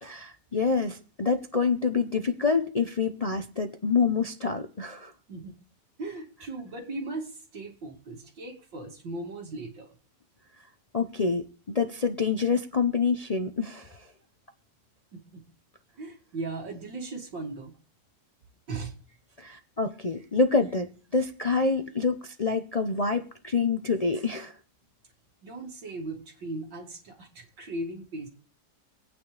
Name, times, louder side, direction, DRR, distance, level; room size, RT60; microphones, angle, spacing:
voice 1, 0.0-5.1 10.9-14.0 19.4-24.5, left 4 dB, 70° left, 6 dB, 0.3 m, -27 dB
voice 2, 5.3-5.6 6.0-10.0 15.1-15.4 16.0-17.7 18.7-19.0 25.4-28.3, right 2 dB, 75° right, 2 dB, 2.9 m, -38 dB
24.5 x 9.2 x 3.3 m, 0.41 s
omnidirectional pair, 2.0 m